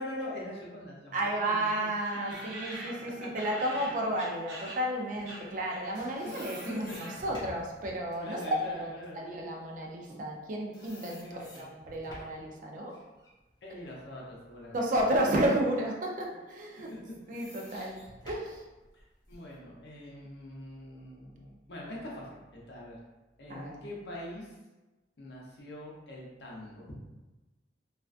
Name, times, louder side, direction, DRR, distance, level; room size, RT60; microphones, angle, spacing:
voice 1, 0.0-1.9 3.2-3.4 3.8-3.9 5.4-5.5 6.6-7.0 8.2-9.3 11.2-11.7 13.6-14.9 17.7-17.9 18.9-23.0 23.4-24.6 25.2-27.0, left 1 dB, 70° left, -4 dB, 0.6 m, -43 dB
voice 2, 1.1-12.9 14.7-16.9 17.3-18.0 18.2-18.6 23.5-23.8, right 1 dB, 45° right, -1 dB, 0.4 m, -32 dB
sound 1, 2.0-4.9 5.2-6.0 6.2-7.4, right 1 dB, 85° right, 0.7 m, -45 dB
sound 2, 5.7-10.4 10.7-12.5 12.9-14.9 15.4-15.5 16.5-19.5, left 1 dB, 25° left, 0.7 m, -52 dB
2.4 x 2.2 x 2.4 m, 1.1 s
head